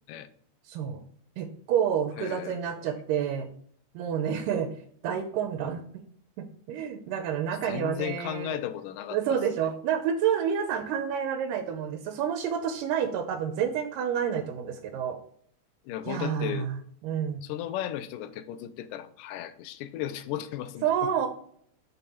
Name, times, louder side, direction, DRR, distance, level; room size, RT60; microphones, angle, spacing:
voice 1, 0.7-1.0 1.4-3.5 3.9-4.7 5.0-5.8 6.4-8.6 9.1-15.2 16.1-16.8 17.0-17.5 20.8-21.3, right 8 dB, 85° right, 2.2 m, -29 dB
voice 2, 2.2-2.7 7.6-9.4 15.9-16.7 17.4-21.1, left 11 dB, 80° left, 2.2 m, -35 dB
6.4 x 5.4 x 4.3 m
omnidirectional pair, 4.0 m